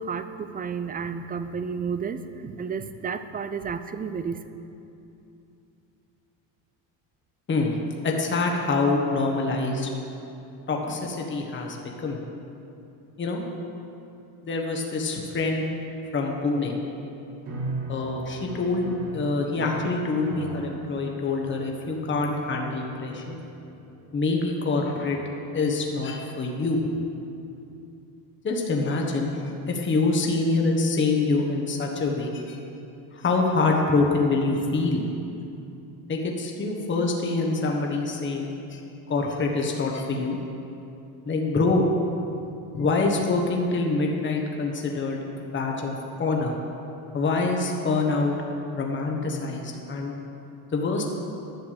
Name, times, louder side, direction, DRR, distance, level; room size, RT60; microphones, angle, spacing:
voice 1, 0.0-4.4, right 6 dB, 20° right, 11 dB, 0.4 m, -31 dB
voice 2, 7.5-7.8 8.0-9.9 10.7-11.8 12.0-12.2 13.2-13.4 14.5-15.7 16.1-16.8 17.9-23.4 24.1-25.2 25.5-26.8 28.4-32.6 33.1-35.0 36.1-38.8 39.1-40.4 41.2-41.9 42.7-45.9 46.2-46.5 47.1-48.3 48.7-50.1 50.7-51.0, left 3 dB, 25° left, 0 dB, 1.3 m, -25 dB
sound 1, 17.4-25.8, right 1 dB, 45° right, 2.4 m, -39 dB
10.5 x 7.0 x 6.7 m, 2.8 s
cardioid pair, 120°, 43 cm